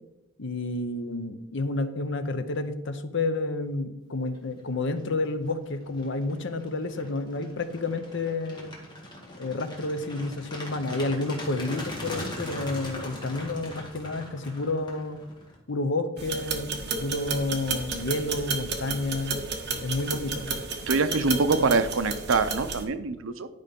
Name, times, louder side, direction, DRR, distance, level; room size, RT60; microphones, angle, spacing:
voice 1, 0.4-8.7 9.4-15.2 15.7-19.4 19.8-20.6, left 2 dB, 60° left, 9 dB, 0.8 m, -30 dB
sound 1, 4.7-5.0 5.4-15.6, left 1 dB, 20° left, 1.8 m, -40 dB
sound 2, 16.2-22.8, right 4 dB, 50° right, 1.3 m, -32 dB
voice 2, 20.9-23.5, right 3 dB, 70° right, 11 dB, 0.6 m, -24 dB
11.0 x 5.3 x 5.3 m, 0.95 s
head